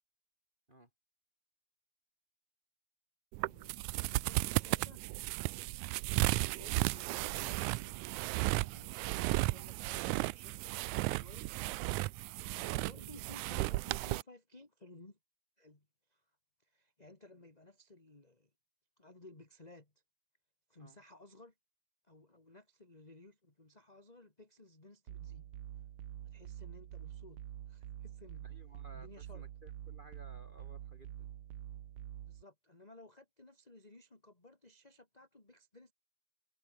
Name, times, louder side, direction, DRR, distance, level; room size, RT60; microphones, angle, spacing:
sound 1, 3.3-14.2, right 21 dB, 90° right, 2.0 m, -35 dB
voice 1, 3.4-5.0 6.3-8.0 8.3-11.5 12.1-12.2 12.5-15.2 15.6-16.3 16.6-18.5 19.0-19.9 20.7-21.5 22.0-25.5 26.2-28.5 28.9-29.4 32.3-35.9, left 2 dB, 15° left, 2.7 m, -57 dB
sound 2, 25.1-32.4, right 11 dB, 60° right, 1.6 m, -47 dB
voice 2, 28.4-31.3, right 1 dB, 15° right, 4.8 m, -58 dB
omnidirectional pair, 3.4 m